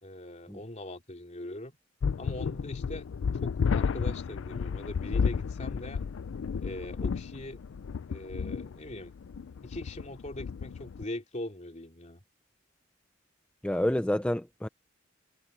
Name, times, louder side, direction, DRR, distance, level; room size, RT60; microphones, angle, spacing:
voice 1, 0.0-1.8 2.2-3.1 3.4-6.0 6.6-7.6 8.1-9.1 9.6-12.2, left 1 dB, 35° left, 2.9 m, -41 dB
sound 1, 2.0-11.0, left 6 dB, 70° left, 0.4 m, -32 dB
voice 2, 13.6-14.7, left 1 dB, 5° left, 0.4 m, -28 dB
head